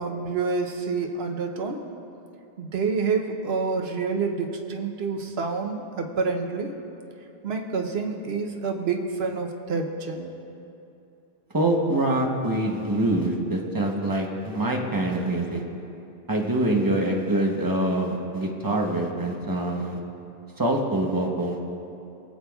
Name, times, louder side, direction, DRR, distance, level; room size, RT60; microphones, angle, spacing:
voice 1, 0.0-1.8 2.6-6.7 7.4-10.3, right 4 dB, 80° right, 3 dB, 1.0 m, -28 dB
voice 2, 11.5-15.6 16.3-20.0 20.6-21.6, right 1 dB, 20° right, 0 dB, 0.9 m, -25 dB
22.0 x 8.1 x 2.3 m, 2.8 s
omnidirectional pair, 1.0 m